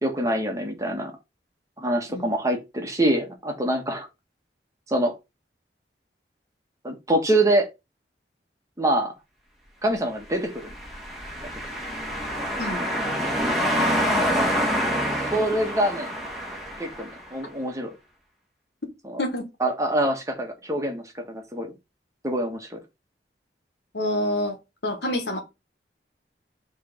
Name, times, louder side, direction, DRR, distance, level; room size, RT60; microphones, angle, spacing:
voice 1, 0.0-1.1 1.8-4.1 4.9-5.1 6.8-7.7 8.8-9.1 9.8-10.6 12.8-12.9 15.3-16.1 16.8-17.9 19.0-19.2 19.6-21.7 22.2-22.8, right 1 dB, 20° right, 1.5 m, -25 dB
sound 1, 10.5-17.3, equal, ahead, 1.7 m, -26 dB
voice 2, 23.9-24.6 24.8-25.4, left 1 dB, 70° left, 1.6 m, -27 dB
6.7 x 3.4 x 5.0 m
head